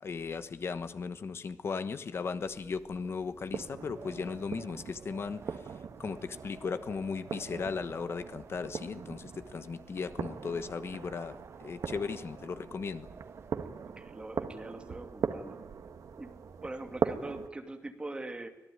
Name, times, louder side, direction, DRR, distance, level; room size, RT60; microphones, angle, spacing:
voice 1, 0.0-5.7 6.0-13.1, left 5 dB, 50° left, 11 dB, 1.2 m, -37 dB
sound 1, 2.4-17.5, right 6 dB, 80° right, 1.7 m, -40 dB
Wind, 3.6-14.0, right 5 dB, 50° right, 1.6 m, -53 dB
voice 2, 13.9-15.6 16.2-16.3 16.6-18.5, right 2 dB, 20° right, 5 dB, 2.5 m, -42 dB
25.5 x 18.0 x 9.4 m, 1.1 s
wide cardioid pair, 175°, 5 cm